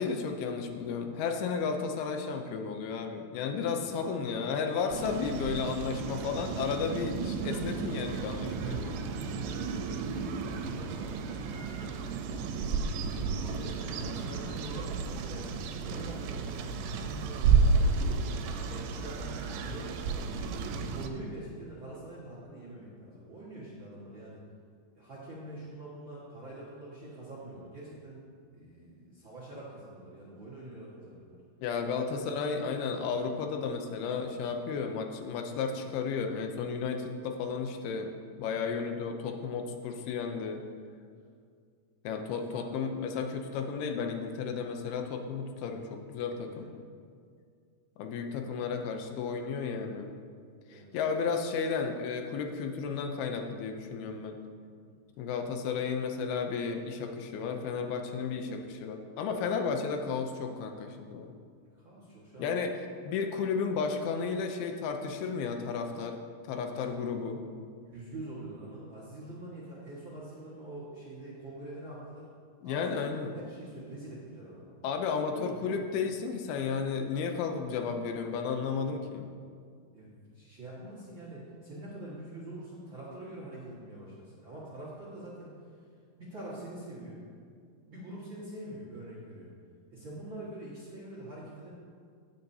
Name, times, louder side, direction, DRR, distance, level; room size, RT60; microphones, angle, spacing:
voice 1, 0.0-9.0 10.2-10.3 31.6-40.6 42.0-46.7 48.0-50.1 50.7-54.4 55.2-61.3 62.4-62.7 63.0-66.2 66.4-67.4 72.6-73.3 74.8-79.3, left 5 dB, 80° left, 4 dB, 2.4 m, -33 dB
sound 1, 4.9-21.1, right 4 dB, 85° right, 2.8 m, -32 dB
voice 2, 9.1-9.7 10.3-11.1 11.6-12.4 13.3-15.5 15.8-16.5 16.8-18.2 18.7-20.3 20.9-24.4 24.9-28.2 28.5-31.4 32.1-32.3 32.5-33.1 38.4-38.7 42.1-42.6 46.4-46.7 50.7-50.9 54.9-55.0 61.7-62.5 66.8-66.9 67.9-72.3 72.6-74.8 75.3-75.9 79.9-85.5 86.2-87.2 87.9-89.5 89.9-91.7, right 1 dB, 60° right, -7 dB, 1.2 m, -45 dB
16.0 x 8.6 x 2.8 m, 2.2 s
omnidirectional pair, 4.9 m